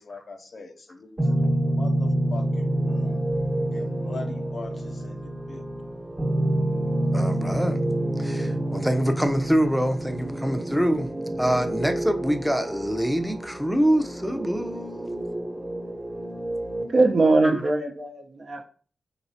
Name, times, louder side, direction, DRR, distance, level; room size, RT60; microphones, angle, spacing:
voice 1, 0.0-3.3 3.7-5.6, left 3 dB, 60° left, 0.4 m, -41 dB
sound 1, 1.2-16.8, right 1 dB, 20° right, 1.1 m, -28 dB
voice 2, 7.1-7.8 8.2-11.1 11.4-15.2 17.4-17.5, equal, ahead, 0.6 m, -25 dB
voice 3, 16.9-18.7, right 3 dB, 60° right, 0.7 m, -21 dB
3.2 x 3.0 x 2.7 m
cardioid pair, 45°, 0 cm